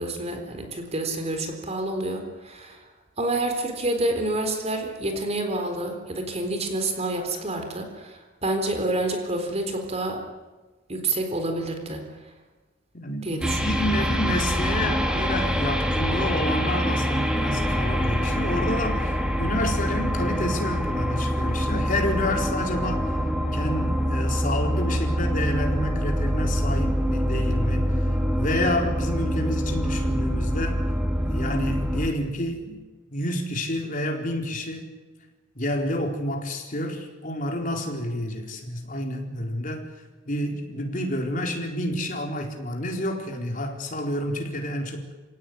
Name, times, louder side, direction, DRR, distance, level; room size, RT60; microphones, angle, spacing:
voice 1, 0.0-2.8 3.2-10.2 10.9-12.0 13.2-13.6 13.9-14.0, right 2 dB, 35° right, 5 dB, 4.1 m, -28 dB
voice 2, 12.9-23.1 23.5-27.8 28.3-30.9 31.3-32.8 33.1-34.9 35.5-39.9 40.3-45.1, left 1 dB, 45° left, 2 dB, 4.3 m, -29 dB
sound 1, 13.4-32.1, equal, 5° right, 2.8 m, -25 dB
28.0 x 18.0 x 9.5 m, 1.2 s
head